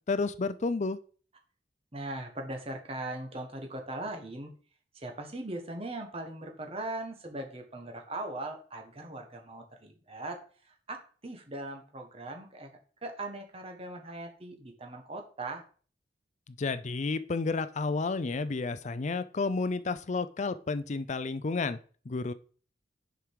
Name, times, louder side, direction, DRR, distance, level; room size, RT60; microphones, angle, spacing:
voice 1, 0.1-1.0 16.5-21.8 22.1-22.3, left 3 dB, 40° left, 12 dB, 0.5 m, -31 dB
voice 2, 1.9-4.5 4.9-10.4 10.6-15.6, right 2 dB, 35° right, 3 dB, 1.3 m, -40 dB
6.7 x 5.1 x 4.7 m, 0.42 s
head